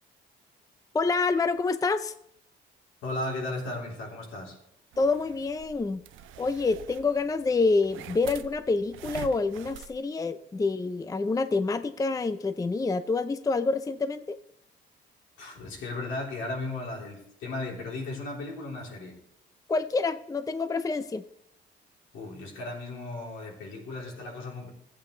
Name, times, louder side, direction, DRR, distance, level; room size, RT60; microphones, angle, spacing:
voice 1, 0.9-2.1 5.0-6.0 6.4-14.4 19.7-21.2, left 3 dB, 15° left, 11 dB, 0.5 m, -27 dB
voice 2, 3.0-4.6 15.4-19.2 22.1-24.7, left 2 dB, 80° left, -1 dB, 3.4 m, -35 dB
sound 1, 4.9-9.9, right 12 dB, 85° right, 0.5 m, -45 dB
15.0 x 8.4 x 3.2 m, 0.74 s
cardioid pair, 90°, 20 cm